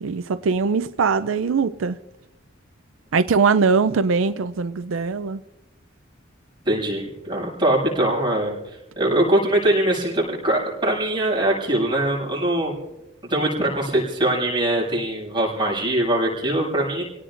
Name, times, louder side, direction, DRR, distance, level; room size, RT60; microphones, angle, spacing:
voice 1, 0.0-2.0 3.1-5.4, right 5 dB, 90° right, 0.5 m, -21 dB
voice 2, 6.6-12.7 13.3-17.0, right 1 dB, 25° right, 6.9 m, -22 dB
29.0 x 18.0 x 2.6 m
head